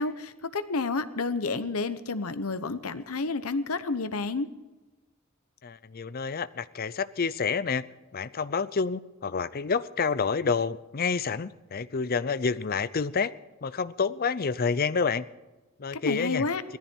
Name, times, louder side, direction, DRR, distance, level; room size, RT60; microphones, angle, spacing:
voice 1, 0.0-4.5 16.0-16.6, left 3 dB, 85° left, 12 dB, 1.0 m, -30 dB
voice 2, 5.6-7.8 8.1-13.3 13.6-15.3 15.8-16.4, left 5 dB, 45° left, 16 dB, 0.6 m, -28 dB
18.0 x 14.0 x 4.5 m, 1.1 s
head